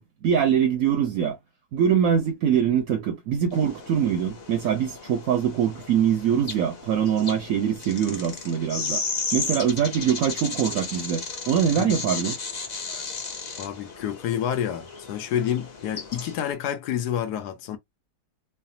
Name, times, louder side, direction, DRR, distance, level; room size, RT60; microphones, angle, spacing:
voice 1, 0.0-1.4 1.7-9.0 9.3-12.4, right 8 dB, 70° right, 0.9 m, -23 dB
sound 1, 3.5-16.5, left 4 dB, 50° left, 0.5 m, -35 dB
voice 2, 13.6-17.8, left 10 dB, 80° left, 1.1 m, -29 dB
3.3 x 2.1 x 2.6 m
omnidirectional pair, 1.7 m